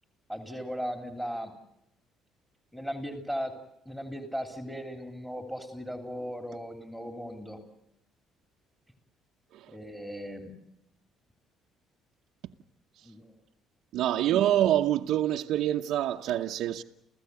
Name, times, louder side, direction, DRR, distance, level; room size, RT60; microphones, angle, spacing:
voice 1, 0.3-1.5 2.7-3.5 3.8-7.6 9.7-10.5 13.0-13.3, equal, 5° left, 3.1 m, -37 dB
voice 2, 13.9-16.8, right 12 dB, 75° right, 0.9 m, -26 dB
29.5 x 15.5 x 9.5 m
cardioid pair, 115°, 0 cm